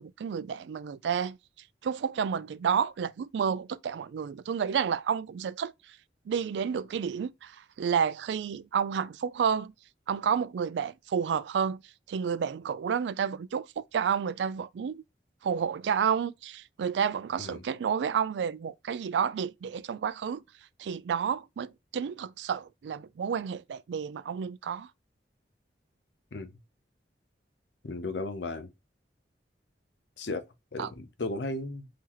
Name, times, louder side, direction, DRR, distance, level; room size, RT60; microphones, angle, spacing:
voice 1, 0.0-1.4 1.8-6.0 6.3-9.7 10.1-11.8 12.1-15.0 15.4-20.4 20.8-24.9 30.8-30.9, right 7 dB, 75° right, 0.3 m, -30 dB
voice 2, 27.8-28.7 30.2-30.4 30.7-31.9, left 2 dB, 75° left, 0.7 m, -35 dB
3.8 x 2.8 x 2.9 m
head